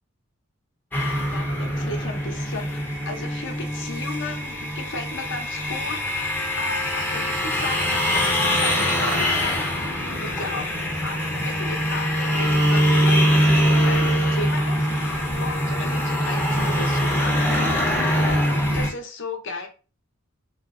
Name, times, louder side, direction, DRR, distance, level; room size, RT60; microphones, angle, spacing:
sound 1, 0.9-18.9, equal, 10° left, 0.5 m, -23 dB
voice 1, 1.3-17.8 18.1-19.7, left 3 dB, 65° left, 4 dB, 0.7 m, -35 dB
3.3 x 2.4 x 2.4 m, 0.34 s
head